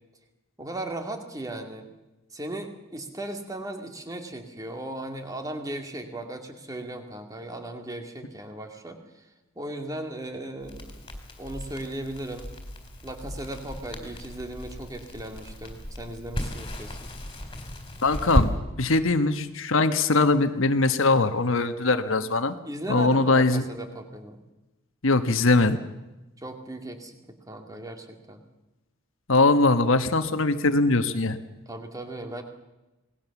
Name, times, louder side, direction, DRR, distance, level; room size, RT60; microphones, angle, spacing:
voice 1, 0.6-1.9 2.3-9.3 9.6-10.9 11.4-12.5 13.0-17.1 22.6-24.4 26.4-28.4 31.7-32.4, right 1 dB, 15° right, 5 dB, 2.3 m, -37 dB
Crackle, 10.6-18.5, equal, 20° left, 3.9 m, -34 dB
voice 2, 18.0-18.5 18.8-22.5 22.9-23.6 25.0-25.8 29.3-31.4, left 3 dB, 65° left, 9 dB, 1.3 m, -21 dB
27.0 x 19.0 x 7.1 m, 1.0 s
head